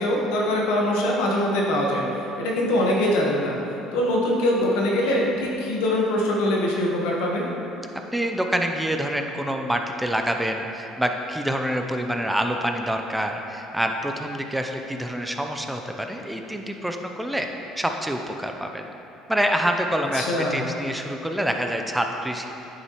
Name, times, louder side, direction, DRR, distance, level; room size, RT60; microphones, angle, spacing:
voice 1, 0.0-3.6 3.9-7.5 20.1-20.6, left 1 dB, 85° left, -2 dB, 1.2 m, -23 dB
voice 2, 8.1-17.5 17.8-18.9 19.3-22.5, equal, 5° right, 4 dB, 0.6 m, -26 dB
9.5 x 5.5 x 3.0 m, 2.9 s
supercardioid pair, 80°, 0 cm